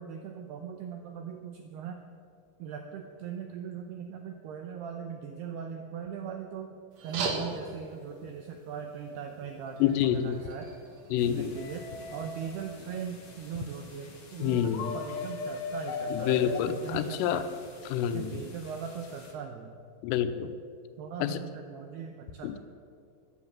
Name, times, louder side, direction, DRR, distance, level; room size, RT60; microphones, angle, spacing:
voice 1, 0.0-2.0 2.6-6.8 7.0-10.7 11.2-17.5 18.1-19.8 21.0-22.6, right 7 dB, 85° right, 5 dB, 2.3 m, -40 dB
sound 1, 6.9-11.9, right 3 dB, 65° right, 1.7 m, -40 dB
voice 2, 9.8-10.4 11.1-11.5 14.4-14.9 16.1-17.4 17.9-18.3 20.0-20.5 21.2-21.4 22.4-22.6, left 10 dB, 85° left, 10 dB, 3.4 m, -28 dB
sound 2, 11.1-19.3, left 2 dB, 55° left, 1.3 m, -51 dB
sound 3, 11.6-13.0 14.4-16.6, left 4 dB, 70° left, 2.3 m, -37 dB
14.0 x 10.0 x 7.3 m, 2.3 s
omnidirectional pair, 5.7 m